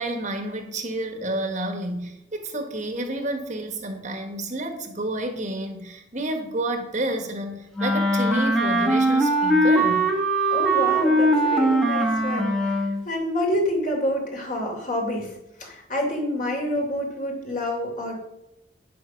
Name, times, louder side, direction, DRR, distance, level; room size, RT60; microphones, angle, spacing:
voice 1, 0.0-10.0, right 1 dB, 40° right, 5 dB, 1.4 m, -30 dB
Wind instrument woodwind instrument, 7.8-13.0, right 1 dB, 5° left, 1.3 m, -21 dB
voice 2, 10.5-15.3 15.6-18.2, left 1 dB, 40° left, 0 dB, 3.1 m, -28 dB
9.3 x 7.7 x 6.3 m, 0.86 s
head